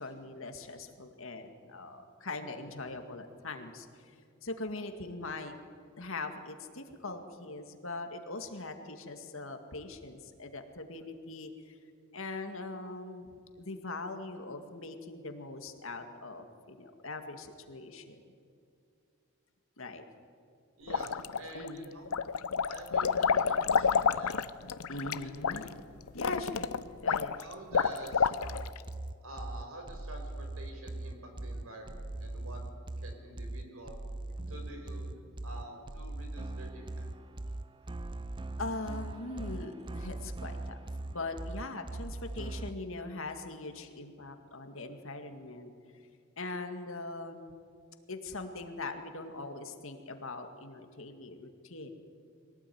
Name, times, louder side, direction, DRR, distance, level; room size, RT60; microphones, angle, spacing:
voice 1, 0.0-3.9 4.4-5.5 6.0-11.7 12.1-13.3 13.6-18.2 19.8-20.0 21.5-21.9 24.9-25.6 26.1-26.7 27.0-27.4 38.6-40.8 41.1-45.7 46.4-47.5 48.1-51.9, left 2 dB, 65° left, 6 dB, 2.1 m, -41 dB
voice 2, 20.8-22.1 22.7-24.4 25.1-25.7 27.4-28.3 29.2-32.6 33.0-34.0 34.5-35.1 35.4-37.1, right 1 dB, 75° right, 3 dB, 4.9 m, -47 dB
sound 1, 20.9-21.7 22.1-28.8, left 6 dB, 85° left, 0.7 m, -29 dB
sound 2, 28.4-42.7, right 2 dB, 20° right, 0.5 m, -40 dB
23.0 x 18.0 x 9.5 m, 2.4 s
head